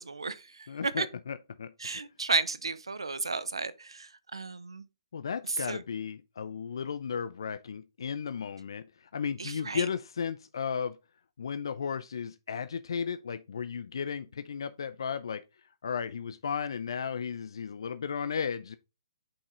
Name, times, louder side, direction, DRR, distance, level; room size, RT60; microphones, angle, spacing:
voice 1, 0.0-1.1 1.8-4.9 5.4-5.8 9.4-9.9, right 4 dB, 90° right, 0.7 m, -33 dB
voice 2, 0.7-1.7 5.1-8.8 9.1-11.0 11.4-15.4 15.8-18.8, left 6 dB, 70° left, 0.5 m, -34 dB
5.6 x 5.4 x 3.8 m
hypercardioid pair, 140°, 3 cm